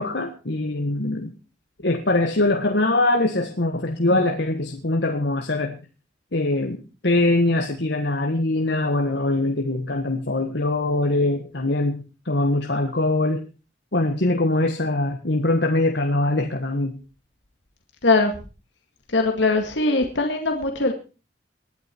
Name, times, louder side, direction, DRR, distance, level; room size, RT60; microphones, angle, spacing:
voice 1, 0.0-1.3 1.8-5.8 6.3-6.8 7.0-13.4 13.9-17.0, left 2 dB, 65° left, 4 dB, 1.6 m, -22 dB
voice 2, 18.0-18.3 19.1-20.9, left 3 dB, 85° left, 4 dB, 2.1 m, -21 dB
20.0 x 11.5 x 4.5 m, 0.35 s
head